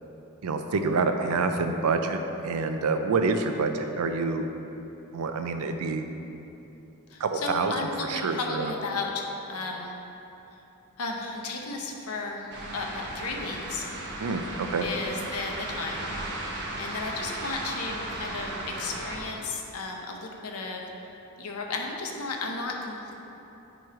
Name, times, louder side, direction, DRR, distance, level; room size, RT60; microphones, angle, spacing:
voice 1, 0.4-4.4 5.1-6.1 7.2-8.7 14.2-14.9, right 4 dB, 85° right, 6 dB, 0.5 m, -27 dB
voice 2, 7.1-10.0 11.0-13.9 14.8-16.1 16.8-20.8 21.4-23.1, left 3 dB, 80° left, 1 dB, 0.8 m, -34 dB
sound 1, 12.5-19.2, right 1 dB, 55° right, 1.0 m, -36 dB
8.8 x 3.1 x 4.8 m, 3.0 s
head